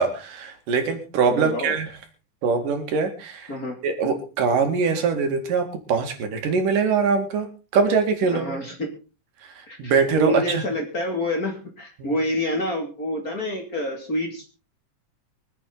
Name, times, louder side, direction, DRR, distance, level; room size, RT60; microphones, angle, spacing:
voice 1, 0.0-1.9 2.4-3.5 3.8-7.5 7.7-8.6 9.4-10.6 12.0-12.2, right 5 dB, 90° right, 5 dB, 3.8 m, -23 dB
voice 2, 1.3-1.7 3.5-3.8 8.3-8.9 9.7-14.6, left 1 dB, 30° left, 2 dB, 2.7 m, -27 dB
24.0 x 8.5 x 3.9 m, 0.33 s
omnidirectional pair, 3.7 m